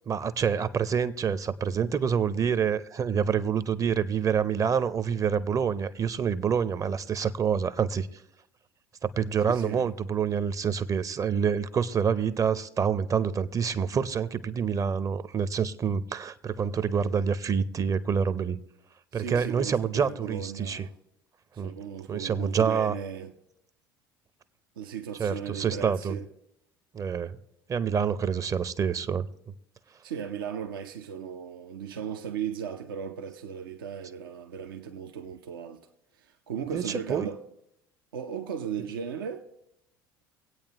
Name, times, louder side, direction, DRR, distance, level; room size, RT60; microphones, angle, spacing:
voice 1, 0.1-8.1 9.1-18.6 19.1-20.9 21.6-21.7 22.1-22.9 25.2-26.1 26.9-27.4 27.7-29.3 36.7-37.3, right 7 dB, 25° right, 0.6 m, -27 dB
voice 2, 9.5-9.9 19.1-20.9 21.5-23.3 24.8-26.3 30.0-35.9 36.1-37.4 38.1-39.5, right 7 dB, 70° right, 0.6 m, -36 dB
24.0 x 8.6 x 2.9 m
figure-of-eight pair, 65°, 12 cm